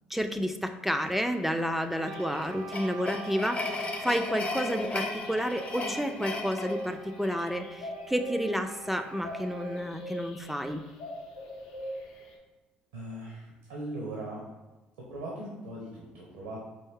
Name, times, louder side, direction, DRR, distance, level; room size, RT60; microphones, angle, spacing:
voice 1, 0.1-10.8, equal, 5° right, 6 dB, 0.3 m, -31 dB
sound 1, 1.0-12.4, left 1 dB, 80° left, 0.6 m, -43 dB
Wind instrument woodwind instrument, 1.9-9.9, right 3 dB, 50° right, 0.6 m, -47 dB
sound 2, 2.1-7.6, left 2 dB, 35° left, 0.7 m, -36 dB
voice 2, 12.9-14.4 15.1-16.6, right 1 dB, 85° right, -4 dB, 0.9 m, -39 dB
4.4 x 2.6 x 3.6 m, 1.1 s
hypercardioid pair, 60°, 4 cm